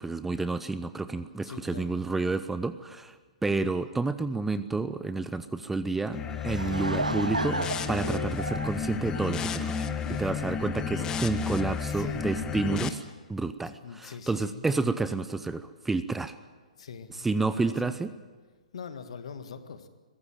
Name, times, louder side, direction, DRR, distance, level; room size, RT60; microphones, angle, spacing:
voice 1, 0.0-3.2 3.4-6.2 6.4-7.6 7.9-9.9 10.2-13.0 13.3-16.4 17.1-18.1, right 3 dB, 5° right, 13 dB, 0.6 m, -30 dB
voice 2, 1.4-1.9 10.0-10.3 11.8-12.4 13.6-14.6 16.8-18.0 18.7-19.9, left 6 dB, 55° left, 10 dB, 1.8 m, -43 dB
sound 1, 6.1-12.9, left 6 dB, 15° left, 1.2 m, -32 dB
Laughter / Crowd, 6.2-9.9, right 2 dB, 80° right, 0.7 m, -33 dB
22.5 x 16.0 x 9.2 m, 1.4 s
figure-of-eight pair, 120°, 4 cm